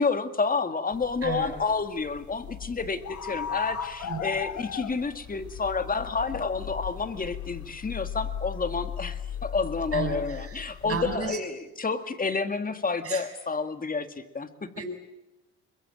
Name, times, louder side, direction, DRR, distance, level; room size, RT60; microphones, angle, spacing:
voice 1, 0.0-14.7, left 4 dB, 30° left, 9 dB, 2.2 m, -29 dB
sound 1, 0.9-11.2, left 9 dB, 75° left, 1.7 m, -37 dB
voice 2, 1.2-1.5 4.0-4.2 9.9-11.4 13.0-13.3 14.7-14.9, right 5 dB, 50° right, 4 dB, 6.4 m, -33 dB
22.5 x 22.0 x 9.1 m, 1.0 s
cardioid pair, 90°, 30 cm